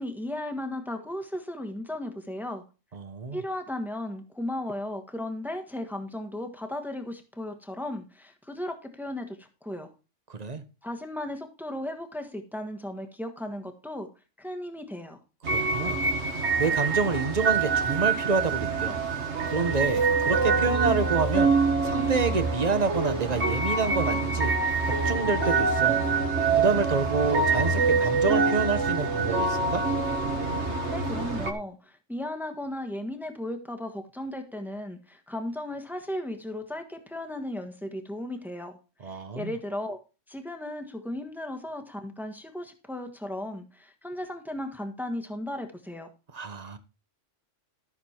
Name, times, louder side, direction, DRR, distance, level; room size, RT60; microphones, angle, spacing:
voice 1, 0.0-2.6 3.3-9.9 10.8-14.1 14.4-15.2 30.9-38.8 39.0-40.0 40.3-46.1, left 1 dB, ahead, 1.5 m, -35 dB
voice 2, 2.9-3.4 10.3-10.6 15.5-16.0 16.6-19.0 19.5-21.5 21.8-24.5 24.8-26.0 26.6-29.8 39.0-39.5 46.3-46.8, right 4 dB, 35° right, 1.0 m, -28 dB
sound 1, 15.4-31.5, right 4 dB, 60° right, 1.8 m, -25 dB
13.5 x 6.7 x 4.5 m
omnidirectional pair, 1.3 m